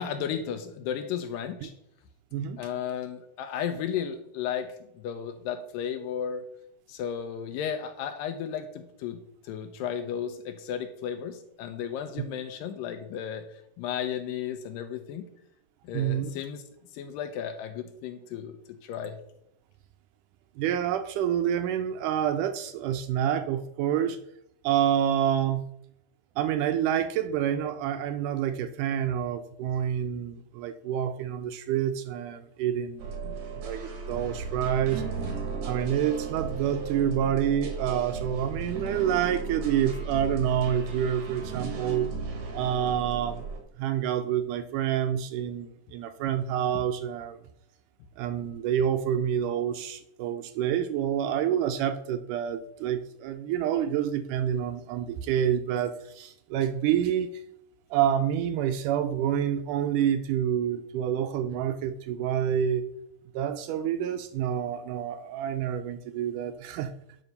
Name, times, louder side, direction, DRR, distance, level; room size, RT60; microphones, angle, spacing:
voice 1, 0.0-1.7 2.6-4.7 5.0-6.4 6.9-9.2 9.4-15.3 15.8-16.6 16.9-18.6 18.8-19.2, left 8 dB, 85° left, 7 dB, 2.4 m, -34 dB
voice 2, 15.9-16.3 20.6-24.2 24.6-25.6 26.4-33.1 33.6-35.1 35.6-42.1 42.5-43.5 43.8-47.4 48.2-57.4 57.9-62.9 63.3-66.9, right 9 dB, 80° right, 9 dB, 1.9 m, -28 dB
sound 1, 33.0-43.6, right 4 dB, 65° right, 3.0 m, -35 dB
11.0 x 4.6 x 5.3 m, 0.76 s
omnidirectional pair, 3.9 m